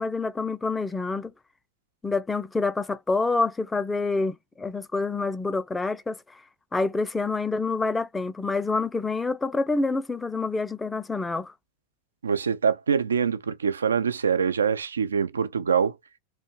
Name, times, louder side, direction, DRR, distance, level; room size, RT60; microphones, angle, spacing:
voice 1, 0.0-1.3 2.0-6.4 6.7-11.5, left 3 dB, 10° left, 0.3 m, -27 dB
voice 2, 12.2-15.9, right 6 dB, 70° right, 0.3 m, -24 dB
2.4 x 2.1 x 2.9 m
figure-of-eight pair, 90°, 0 cm